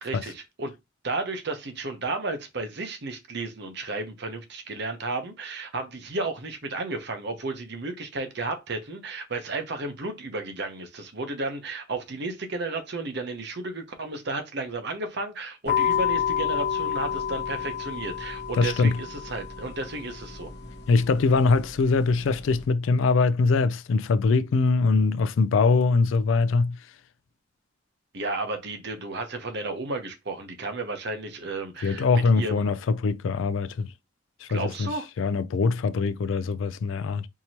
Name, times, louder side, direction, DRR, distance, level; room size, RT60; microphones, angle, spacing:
voice 1, 0.0-0.7 1.0-20.5 28.1-32.6 34.5-35.1, right 2 dB, 60° right, 0.9 m, -33 dB
sound 1, 15.7-22.7, left 8 dB, 60° left, 0.9 m, -30 dB
voice 2, 18.5-19.0 20.9-26.8 31.8-33.9 34.4-34.9 35.2-37.3, left 4 dB, 80° left, 0.4 m, -22 dB
4.6 x 2.9 x 2.8 m
head